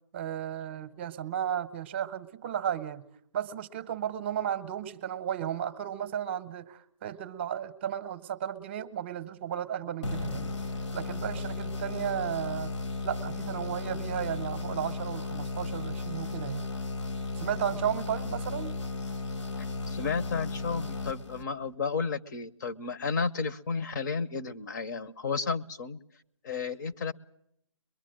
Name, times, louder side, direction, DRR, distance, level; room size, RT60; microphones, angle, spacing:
voice 1, 0.1-3.1 3.3-10.5 10.9-12.8 13.0-16.7 17.3-18.8, right 9 dB, 25° right, 12 dB, 0.9 m, -34 dB
sound 1, 10.0-21.7, left 3 dB, 80° left, 1.6 m, -35 dB
voice 2, 19.6-26.0 26.4-27.1, left 5 dB, 40° left, 12 dB, 0.9 m, -32 dB
23.0 x 22.5 x 7.7 m, 0.73 s
hypercardioid pair, 165°, 16 cm